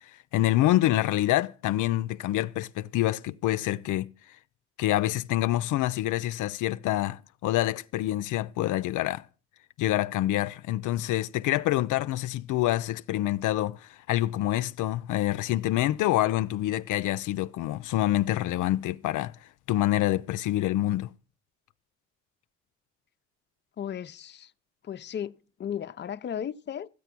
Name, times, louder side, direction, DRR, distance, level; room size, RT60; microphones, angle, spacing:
voice 1, 0.3-4.1 4.8-9.2 9.8-19.4 19.7-21.1, left 15 dB, 80° left, 0.5 m, -26 dB
voice 2, 23.8-24.5 24.8-26.9, left 9 dB, 35° left, 0.6 m, -35 dB
13.5 x 8.1 x 5.9 m
cardioid pair, 90°, 30 cm